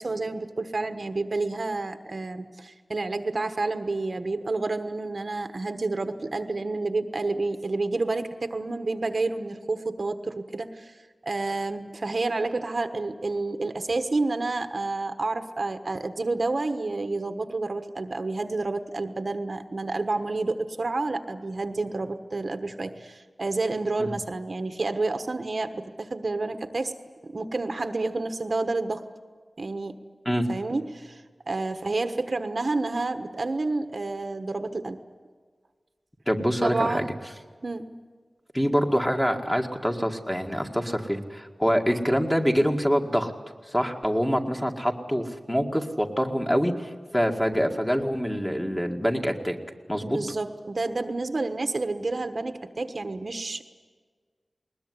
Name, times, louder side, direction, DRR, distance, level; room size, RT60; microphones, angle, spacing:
voice 1, 0.0-11.0 11.2-26.9 27.2-29.0 29.6-29.9 30.5-31.2 31.5-35.0 36.6-37.1 37.6-37.9 50.0-53.6, right 3 dB, 55° right, 8 dB, 1.3 m, -29 dB
voice 2, 36.3-37.0 38.5-43.3 43.7-49.6 49.9-50.2, equal, 10° left, 2 dB, 2.1 m, -25 dB
20.5 x 20.5 x 9.8 m, 1.5 s
wide cardioid pair, 90°, 0 cm